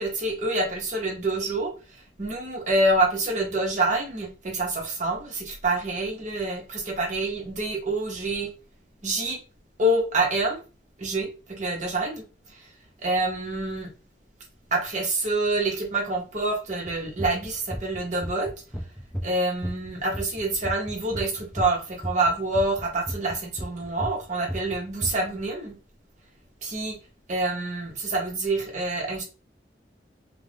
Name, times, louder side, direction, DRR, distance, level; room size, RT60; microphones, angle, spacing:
voice 1, 0.0-1.7 2.2-8.5 9.0-9.4 9.8-10.6 11.0-12.2 13.0-13.9 14.7-18.5 19.2-25.8 26.6-27.0 27.3-29.2, right 2 dB, 45° right, 1 dB, 0.8 m, -26 dB
sound 1, 16.9-19.4 19.6-21.7 22.0-24.2 24.5-25.1, equal, ahead, 0.4 m, -33 dB
2.4 x 2.1 x 3.3 m, 0.34 s
head